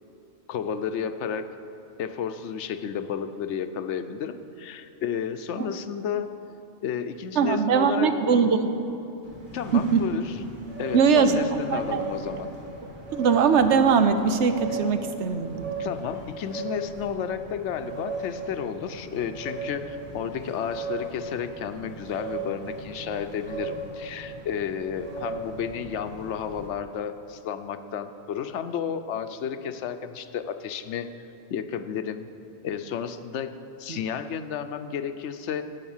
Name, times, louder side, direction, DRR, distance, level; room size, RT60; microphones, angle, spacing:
voice 1, 0.5-1.4 2.0-6.3 6.8-8.1 9.5-10.4 10.8-12.5 15.8-31.1 31.5-32.3 32.6-33.5 33.8-35.6, left 7 dB, 80° left, 10 dB, 0.9 m, -32 dB
voice 2, 7.4-8.7 9.7-10.0 10.9-11.4 11.7-12.0 13.1-15.6 33.9-34.0, right 6 dB, 80° right, 9 dB, 1.0 m, -21 dB
sound 1, 9.2-26.7, right 3 dB, 45° right, 1.8 m, -37 dB
11.0 x 8.5 x 7.2 m, 3.0 s
omnidirectional pair, 1.2 m